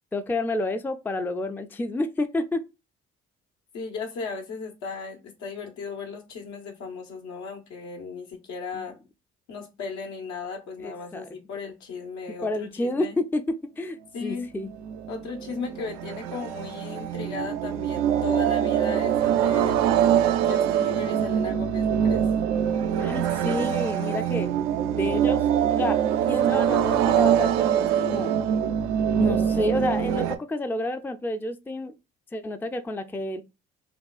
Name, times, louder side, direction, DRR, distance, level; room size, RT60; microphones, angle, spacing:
voice 1, 0.1-2.6 8.7-8.8 10.8-11.3 12.3-14.7 23.0-24.5 24.9-26.0 26.3-28.3 29.2-31.9 32.3-33.4, left 2 dB, 5° left, 0.4 m, -30 dB
voice 2, 3.7-9.0 9.5-13.1 14.1-14.5 15.1-19.8 20.4-22.3, left 4 dB, 70° left, 1.1 m, -36 dB
sound 1, 14.8-30.4, right 9 dB, 80° right, 0.5 m, -24 dB
5.2 x 2.3 x 2.3 m
hypercardioid pair, 55°, 29 cm